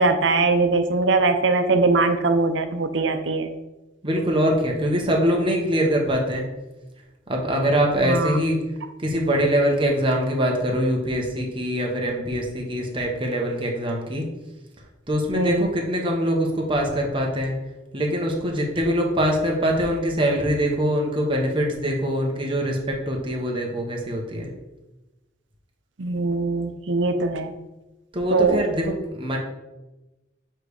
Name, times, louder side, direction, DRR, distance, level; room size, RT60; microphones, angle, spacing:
voice 1, 0.0-3.5 8.0-8.4 15.3-15.7 26.0-27.5 28.3-28.6, right 3 dB, 80° right, 8 dB, 0.7 m, -21 dB
voice 2, 4.0-6.4 7.3-8.6 9.0-14.2 15.1-17.5 17.9-24.5 28.1-29.4, equal, 25° right, 0 dB, 1.2 m, -23 dB
7.5 x 3.3 x 4.8 m, 1.0 s
head